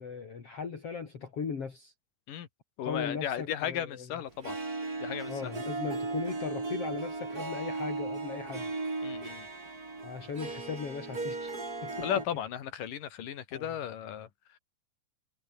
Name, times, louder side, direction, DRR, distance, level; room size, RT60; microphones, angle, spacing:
voice 1, 0.0-1.9 2.8-4.1 5.3-8.7 10.0-11.5 11.8-12.1 13.5-13.8, left 6 dB, 45° left, 3.9 m, -38 dB
voice 2, 2.8-4.6 5.0-5.6 9.0-9.5 12.0-14.3, left 9 dB, 80° left, 3.6 m, -35 dB
Harp, 4.4-12.3, right 3 dB, 25° right, 4.6 m, -36 dB
omnidirectional pair, 3.8 m